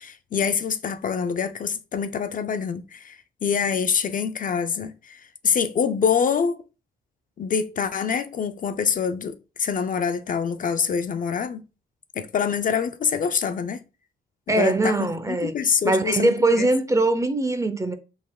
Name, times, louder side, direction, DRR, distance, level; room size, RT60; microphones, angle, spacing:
voice 1, 0.0-6.6 7.4-11.6 12.2-13.8 14.5-16.7, left 6 dB, 45° left, 0.5 m, -25 dB
voice 2, 14.5-15.6 15.8-18.0, right 2 dB, 15° right, 0.6 m, -21 dB
5.1 x 3.7 x 2.3 m
cardioid pair, 90°, 20 cm